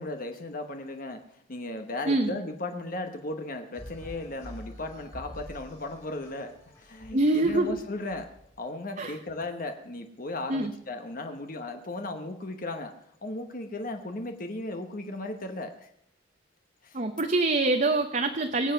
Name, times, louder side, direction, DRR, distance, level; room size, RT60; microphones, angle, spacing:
voice 1, 0.0-8.3 8.6-12.9 13.2-15.9 16.8-17.0, left 2 dB, 45° left, 5 dB, 1.1 m, -36 dB
sound 1, 3.7-8.6, equal, 20° left, 2.9 m, -47 dB
voice 2, 7.1-7.8 9.0-9.2 10.5-10.7 16.9-18.7, right 2 dB, 40° right, 5 dB, 0.9 m, -25 dB
23.0 x 8.1 x 5.7 m, 0.71 s
head